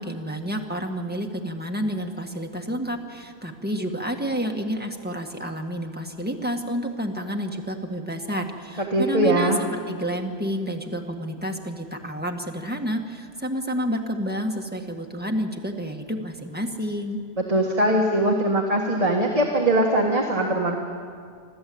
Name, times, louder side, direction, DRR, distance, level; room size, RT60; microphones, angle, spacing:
voice 1, 0.0-17.2, equal, 10° right, 2 dB, 1.8 m, -29 dB
voice 2, 8.8-9.6 17.4-20.8, right 1 dB, 30° right, 0 dB, 1.8 m, -21 dB
27.0 x 13.5 x 8.7 m, 2.2 s
omnidirectional pair, 1.2 m